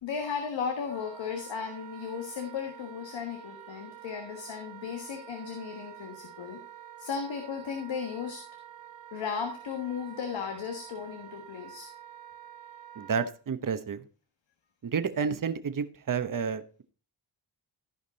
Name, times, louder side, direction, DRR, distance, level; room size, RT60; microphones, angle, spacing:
voice 1, 0.0-6.6 7.0-8.4 9.1-11.9, left 6 dB, 85° left, 5 dB, 1.5 m, -35 dB
Wind instrument woodwind instrument, 0.9-13.3, right 10 dB, 80° right, 1.8 m, -48 dB
voice 2, 13.0-14.0 14.8-16.8, right 6 dB, 45° right, 11 dB, 1.0 m, -30 dB
14.5 x 5.2 x 4.1 m, 0.37 s
cardioid pair, 60°, 44 cm